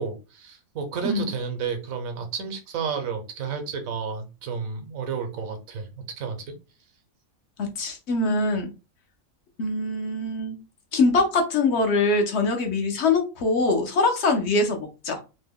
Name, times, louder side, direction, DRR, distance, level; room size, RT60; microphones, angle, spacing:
voice 1, 0.0-6.5, right 6 dB, 85° right, 1.2 m, -31 dB
voice 2, 7.6-8.7 9.6-10.6 10.9-15.2, left 3 dB, 65° left, 0.8 m, -23 dB
2.9 x 2.1 x 3.4 m
omnidirectional pair, 1.4 m